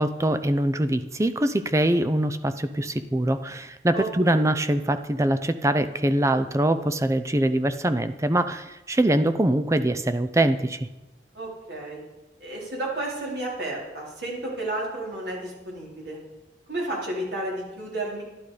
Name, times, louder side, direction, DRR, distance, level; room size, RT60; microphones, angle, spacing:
voice 1, 0.0-10.9, right 1 dB, 15° right, 11 dB, 0.5 m, -23 dB
voice 2, 3.9-4.4 11.3-12.0 12.4-16.2 16.7-18.2, right 1 dB, 70° right, -3 dB, 4.1 m, -32 dB
12.0 x 12.0 x 4.9 m, 1.0 s
head